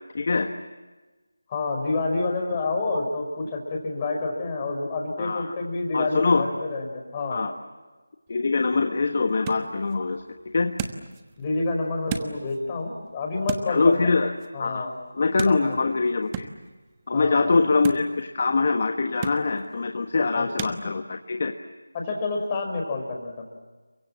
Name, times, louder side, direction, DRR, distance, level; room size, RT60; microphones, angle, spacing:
voice 1, 0.1-0.5 5.2-5.6 5.9-6.4 7.3-7.5 8.3-10.2 10.5-10.7 13.7-14.3 14.6-14.9 15.1-16.5 17.1-21.5, left 3 dB, 40° left, 5 dB, 1.4 m, -23 dB
voice 2, 1.5-7.4 11.4-14.1 14.5-14.9 15.5-15.8 17.1-17.6 20.2-20.5 21.9-23.4, left 3 dB, 20° left, 2 dB, 5.0 m, -28 dB
sound 1, 8.3-20.8, right 7 dB, 15° right, 1.2 m, -39 dB
29.5 x 24.0 x 7.5 m, 1.3 s
figure-of-eight pair, 165°, 0 cm